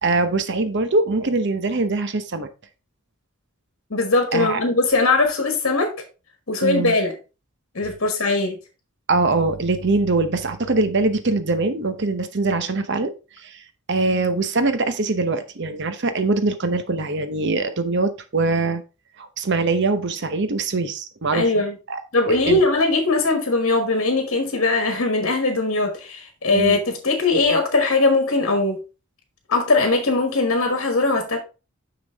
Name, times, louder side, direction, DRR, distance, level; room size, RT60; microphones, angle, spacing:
voice 1, 0.0-2.5 4.3-4.6 6.6-6.9 9.1-13.6 13.9-18.8 19.2-22.0 22.5-22.6 26.5-26.8, right 3 dB, 55° right, 0.8 m, -22 dB
voice 2, 3.9-5.9 6.5-7.1 7.7-8.6 21.3-21.8 22.1-28.8 29.5-31.4, left 3 dB, 60° left, 1.4 m, -20 dB
6.2 x 6.0 x 3.5 m
head